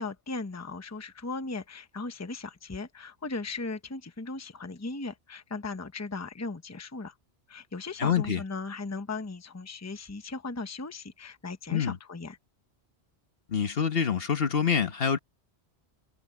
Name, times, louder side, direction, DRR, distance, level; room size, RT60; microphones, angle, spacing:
voice 1, 0.0-7.1 7.5-12.4, left 3 dB, 15° left, 0.9 m, -37 dB
voice 2, 8.0-8.4 11.7-12.0 13.5-15.2, left 7 dB, 60° left, 1.5 m, -26 dB
omnidirectional pair, 1.1 m